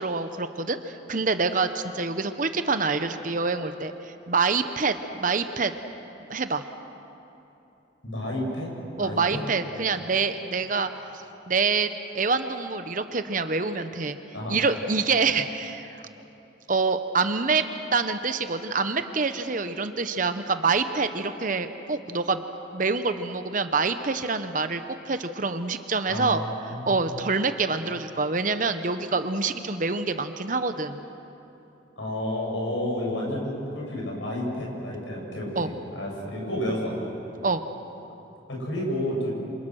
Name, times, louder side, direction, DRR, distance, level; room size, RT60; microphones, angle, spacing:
voice 1, 0.0-5.7 6.3-6.6 9.0-14.2 14.5-16.0 16.7-22.4 22.7-26.4 26.8-31.0 35.5-35.7 37.4-37.6, right 4 dB, 45° right, 9 dB, 0.9 m, -26 dB
voice 2, 8.0-9.4 14.3-14.6 26.1-27.0 32.0-37.2 38.5-39.3, left 1 dB, 80° left, -2 dB, 7.9 m, -31 dB
28.5 x 26.5 x 6.4 m, 3.0 s
head